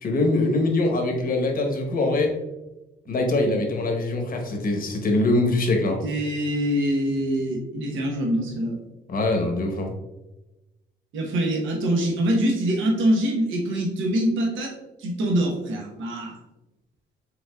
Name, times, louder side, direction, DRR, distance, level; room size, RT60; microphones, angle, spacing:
voice 1, 0.0-2.3 3.1-6.0 9.1-9.9, left 2 dB, 45° left, 2 dB, 1.0 m, -23 dB
voice 2, 6.0-8.8 11.1-16.4, right 1 dB, 80° right, -1 dB, 1.0 m, -24 dB
5.0 x 3.6 x 2.3 m, 1.0 s
cardioid pair, 90°, 20 cm